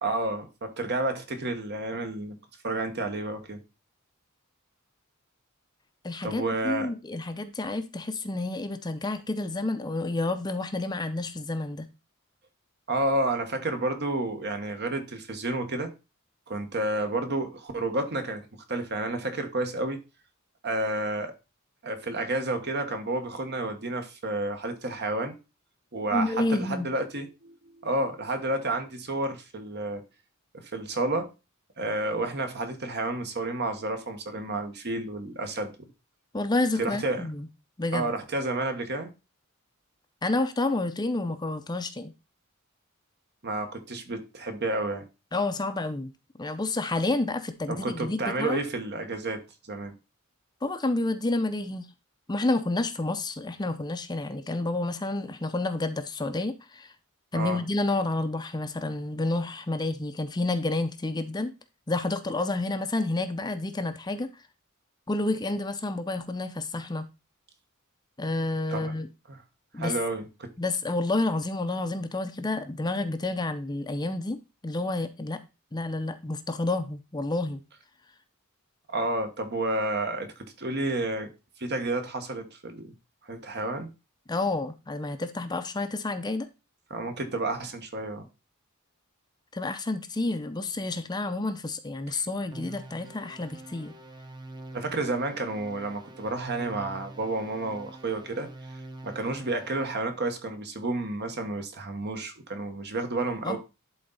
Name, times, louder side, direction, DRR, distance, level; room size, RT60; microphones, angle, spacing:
voice 1, 0.0-2.4 2.6-3.6 6.2-6.9 12.9-15.9 16.5-20.0 20.6-21.3 21.8-25.4 25.9-27.5 27.8-30.0 30.5-31.3 31.8-35.7 36.8-37.3 37.9-39.1 43.4-45.0 47.7-49.4 49.7-49.9 57.3-57.6 68.7-68.9 69.3-69.4 69.8-70.5 78.9-81.3 81.6-82.9 83.2-83.9 86.9-88.3 94.7-98.5 99.0-103.6, right 2 dB, 50° right, 1.3 m, -30 dB
voice 2, 6.0-11.9 26.1-26.9 36.3-37.5 37.8-38.1 40.2-42.1 45.3-46.1 46.4-48.6 50.6-51.9 52.3-56.9 57.3-61.5 61.9-64.3 65.1-67.1 68.2-69.1 69.7-69.9 70.6-74.4 74.6-75.4 75.7-77.6 84.3-86.5 89.5-94.0 103.4-103.6, left 2 dB, 20° left, 0.6 m, -29 dB
sound 1, 92.5-100.1, right 2 dB, 20° right, 0.9 m, -45 dB
11.0 x 3.9 x 4.0 m
head